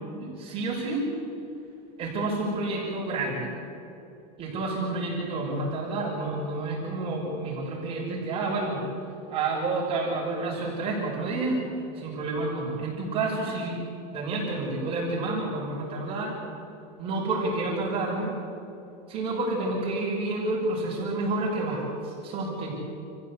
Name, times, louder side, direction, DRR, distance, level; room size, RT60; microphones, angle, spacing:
voice 1, 0.2-1.0 2.0-3.5 4.4-8.8 9.3-11.6 11.9-13.8 14.1-16.4 17.0-18.4 19.1-22.7, right 2 dB, 25° right, -4 dB, 5.8 m, -29 dB
28.5 x 15.0 x 8.4 m, 2.8 s
supercardioid pair, 165°, 20 cm